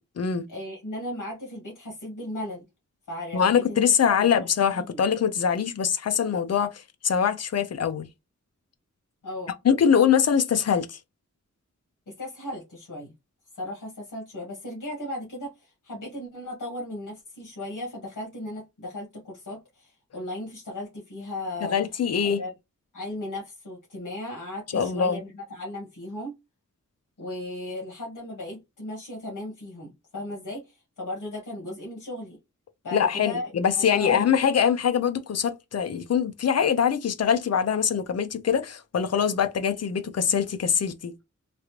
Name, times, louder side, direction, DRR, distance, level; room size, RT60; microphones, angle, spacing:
voice 1, 0.5-2.7 3.1-4.3 4.7-5.0 9.2-9.5 12.1-13.1 13.5-21.7 22.4-22.5 22.9-26.4 27.2-32.4 32.8-34.3, left 1 dB, 80° left, 1.2 m, -36 dB
voice 2, 3.3-8.1 9.6-11.0 21.6-22.4 24.7-25.2 32.9-41.1, left 7 dB, 55° left, 0.5 m, -23 dB
3.1 x 2.4 x 3.0 m
wide cardioid pair, 120°, 31 cm